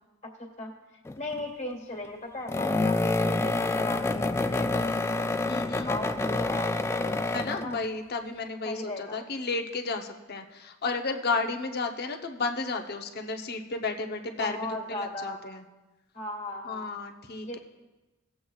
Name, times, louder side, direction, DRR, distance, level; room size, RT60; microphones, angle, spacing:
voice 1, 0.4-0.7 1.2-5.3 5.8-7.2 7.5-7.8 8.6-9.2 14.4-15.4 16.1-16.9 17.4-17.6, left 1 dB, 35° left, 0 dB, 1.9 m, -37 dB
sound 1, 1.1-1.4 2.5-7.8, left 2 dB, 10° left, 0.3 m, -27 dB
voice 2, 5.5-5.9 7.3-15.6 16.6-17.6, left 3 dB, 50° left, 4 dB, 0.8 m, -33 dB
19.0 x 7.8 x 2.4 m, 1.1 s
head